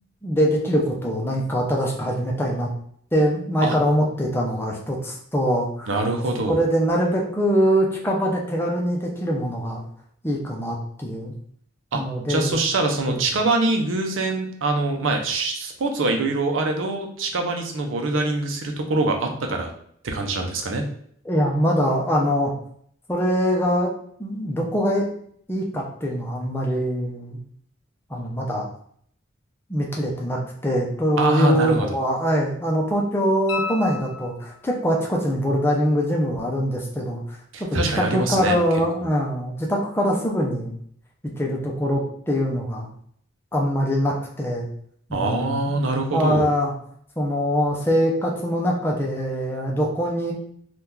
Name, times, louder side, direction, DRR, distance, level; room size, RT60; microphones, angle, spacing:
voice 1, 0.2-2.7 3.1-5.9 6.5-9.8 10.2-11.3 11.9-12.6 13.1-13.3 21.2-22.5 23.1-23.9 24.2-25.1 25.5-27.4 28.1-28.7 29.7-40.7 41.4-42.9 43.5-44.7 45.1-45.7 46.1-46.7 47.2-50.3, equal, 10° left, -2 dB, 0.5 m, -23 dB
voice 2, 5.9-6.6 11.9-12.0 12.3-19.7 20.0-20.8 31.2-31.9 37.5-38.6 45.1-46.5, right 2 dB, 80° right, 3 dB, 0.6 m, -24 dB
sound 1, 33.5-34.8 37.6-37.7, left 5 dB, 75° left, 0.5 m, -33 dB
2.9 x 2.4 x 3.6 m, 0.64 s
head